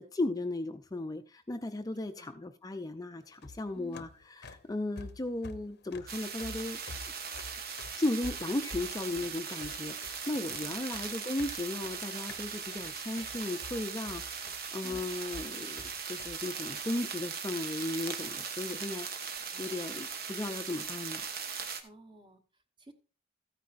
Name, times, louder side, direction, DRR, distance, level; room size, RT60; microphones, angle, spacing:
voice 1, 0.0-4.1 4.4-6.8 8.0-21.2, left 2 dB, 20° left, 7 dB, 0.5 m, -36 dB
sound 1, 3.3-16.4, left 3 dB, 60° left, 0.7 m, -49 dB
voice 2, 3.7-4.1 14.8-15.1 19.5-19.8 21.8-22.9, right 2 dB, 25° right, 7 dB, 1.2 m, -53 dB
sound 2, 6.1-21.8, right 6 dB, 55° right, 1.2 m, -39 dB
14.0 x 9.3 x 2.5 m, 0.35 s
head